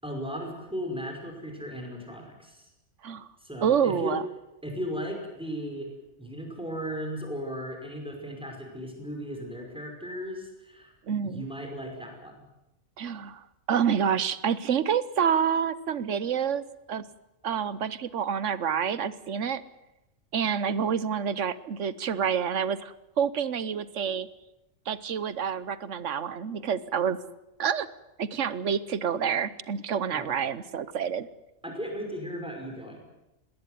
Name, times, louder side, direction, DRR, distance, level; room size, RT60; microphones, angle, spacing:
voice 1, 0.0-2.7 3.4-4.2 4.6-5.9 6.2-10.9 11.2-12.3 30.1-30.3 31.6-33.0, equal, 5° right, 2 dB, 5.7 m, -36 dB
voice 2, 3.6-4.2 11.1-11.4 13.0-17.0 17.4-19.6 20.3-24.3 24.9-27.2 27.6-27.9 28.2-31.3, right 7 dB, 65° right, 16 dB, 1.3 m, -28 dB
20.5 x 18.0 x 9.5 m, 0.95 s
omnidirectional pair, 1.4 m